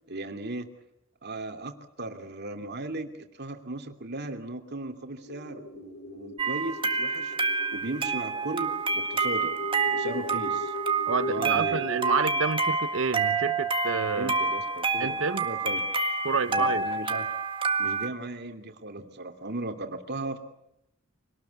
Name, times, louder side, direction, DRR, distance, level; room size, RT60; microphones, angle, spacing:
voice 1, 0.1-0.7 1.2-1.7 2.0-7.4 7.7-9.5 9.9-10.7 11.3-11.9 14.1-15.9 16.5-17.3 17.8-20.4, right 2 dB, 55° right, 2.8 m, -36 dB
sound 1, 5.3-12.2, left 3 dB, 50° left, 1.2 m, -38 dB
sound 2, 6.4-18.1, right 4 dB, 25° right, 1.8 m, -28 dB
voice 2, 11.1-14.3 15.0-15.5 16.2-16.8, right 5 dB, 80° right, 0.9 m, -28 dB
25.5 x 19.0 x 8.4 m
head